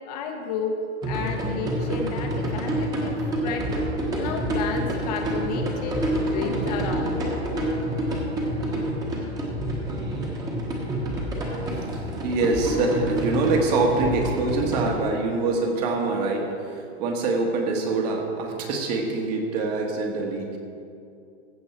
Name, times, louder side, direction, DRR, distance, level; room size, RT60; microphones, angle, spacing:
voice 1, 0.1-0.8 1.0-3.7 4.2-7.3 9.0-9.1, left 5 dB, 35° left, 3 dB, 1.0 m, -32 dB
sound 1, 1.0-14.9, right 1 dB, 10° right, 1.2 m, -28 dB
voice 2, 12.2-20.6, right 3 dB, 35° right, 2 dB, 1.5 m, -25 dB
15.0 x 7.9 x 4.5 m, 2.5 s
supercardioid pair, 170°, 34 cm